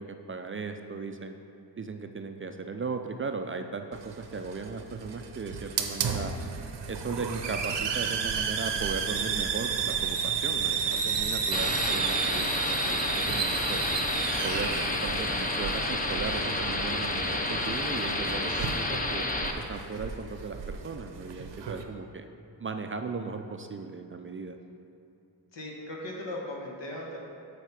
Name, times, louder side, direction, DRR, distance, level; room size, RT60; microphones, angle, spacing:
voice 1, 0.0-1.4 1.8-6.3 6.9-13.8 14.4-19.2 19.5-22.3 22.6-24.6, right 4 dB, 30° right, 6 dB, 0.4 m, -37 dB
Hiss, 3.9-21.8, right 6 dB, 75° right, 0.8 m, -33 dB
sound 1, 11.5-19.5, left 2 dB, 20° left, 0.7 m, -30 dB
voice 2, 25.5-27.2, left 1 dB, 80° left, -1 dB, 1.6 m, -38 dB
8.1 x 4.2 x 5.8 m, 2.8 s
cardioid pair, 85°, 43 cm